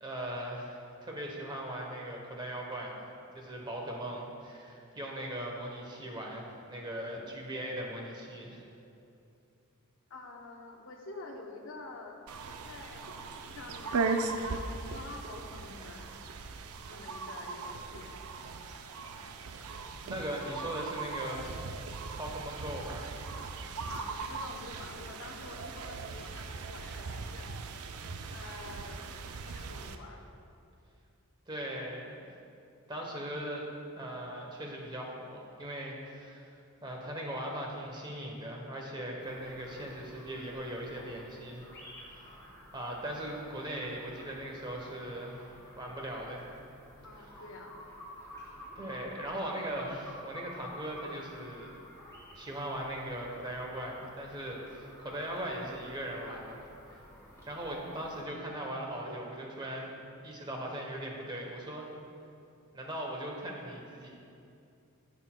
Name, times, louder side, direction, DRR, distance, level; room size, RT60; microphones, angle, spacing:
voice 1, 0.0-3.1 3.3-8.6 19.2-19.3 20.0-21.4 22.1-23.1 31.5-32.2 32.9-33.6 33.9-36.5 36.8-41.6 42.0-42.5 42.7-46.4 47.2-47.3 48.7-51.7 52.3-56.6 56.9-57.0 57.5-59.9 60.2-61.8 62.7-64.1, right 1 dB, 20° right, -1 dB, 0.9 m, -39 dB
voice 2, 10.1-12.2 12.6-16.1 16.9-18.1 23.9-27.6 28.3-29.0 29.5-30.2 47.0-47.7, left 2 dB, 60° left, 2 dB, 0.7 m, -47 dB
sound 1, 12.3-30.0, right 4 dB, 80° right, 0.5 m, -39 dB
sound 2, 39.2-58.2, left 1 dB, 15° left, 1.7 m, -51 dB
13.5 x 6.0 x 2.2 m, 2.6 s
head